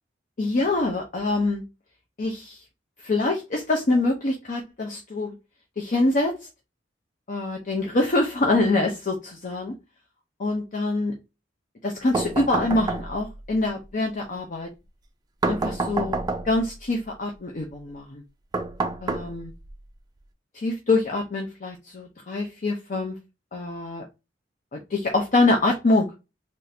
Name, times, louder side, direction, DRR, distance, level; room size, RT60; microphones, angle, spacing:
voice 1, 0.4-1.6 2.2-2.6 3.0-5.3 5.8-6.5 7.3-9.7 10.4-11.2 11.8-14.7 15.5-16.2 16.4-18.2 19.0-19.5 20.5-23.2 23.5-24.1 24.7-26.1, left 2 dB, 45° left, 1 dB, 0.6 m, -25 dB
sound 1, 12.1-13.4 15.4-16.7 18.5-19.7, right 3 dB, 20° right, 0.4 m, -28 dB
3.6 x 2.5 x 2.7 m, 0.26 s
head